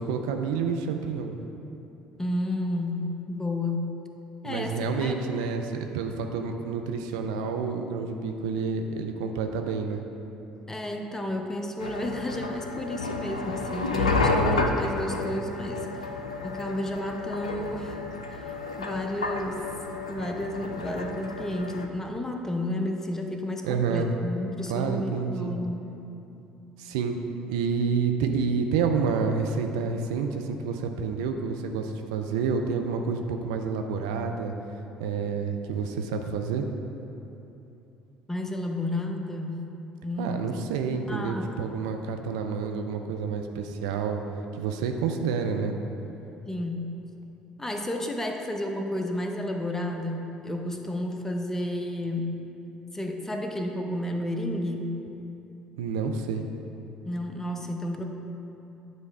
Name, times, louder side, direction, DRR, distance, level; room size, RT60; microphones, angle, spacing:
voice 1, 0.0-1.3 4.4-10.0 23.6-24.1 24.7-25.6 26.8-27.2 27.5-34.5 35.0-36.7 40.2-44.2 44.5-45.8 55.8-56.4, right 5 dB, 70° right, 4 dB, 0.4 m, -29 dB
voice 2, 2.2-4.0 4.4-5.2 10.7-15.9 16.4-18.0 18.3-19.6 20.1-25.9 38.3-39.6 40.0-40.4 41.1-41.5 46.5-46.9 47.6-52.4 52.9-55.0 57.1-58.0, left 1 dB, 10° left, 3 dB, 0.7 m, -31 dB
sound 1, 11.8-21.9, left 3 dB, 85° left, 0.3 m, -30 dB
9.2 x 3.2 x 4.6 m, 2.9 s
figure-of-eight pair, 55°, 4 cm